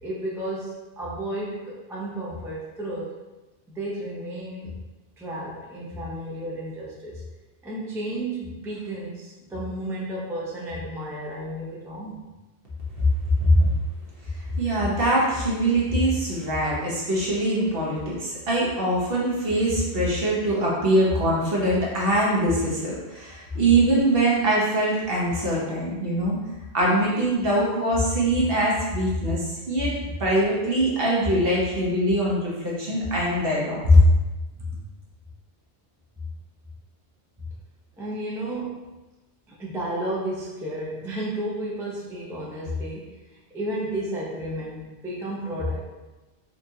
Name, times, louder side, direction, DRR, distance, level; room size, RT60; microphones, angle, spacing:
voice 1, 0.0-3.1 3.7-4.8 5.2-7.2 7.6-12.2 23.3-23.6 34.6-34.8 38.0-39.0 39.5-45.8, right 1 dB, 5° right, -5 dB, 0.4 m, -32 dB
voice 2, 14.6-26.4 26.7-29.9 30.2-34.0, right 1 dB, 60° right, -5 dB, 1.1 m, -22 dB
4.2 x 2.5 x 2.7 m, 1.1 s
omnidirectional pair, 1.1 m